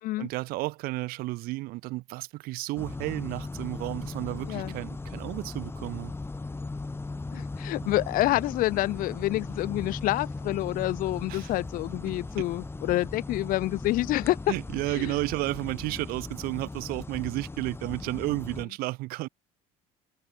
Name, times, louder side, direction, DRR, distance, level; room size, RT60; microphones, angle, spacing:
voice 1, 0.2-6.1 7.8-7.9 11.3-11.5 14.5-19.3, right 20 dB, 70° right, 2.5 m, -32 dB
sound 1, 2.8-18.7, left 3 dB, 15° left, 2.0 m, -38 dB
voice 2, 7.3-14.4 14.9-15.1, left 17 dB, 65° left, 1.1 m, -28 dB
supercardioid pair, 90°, 16 cm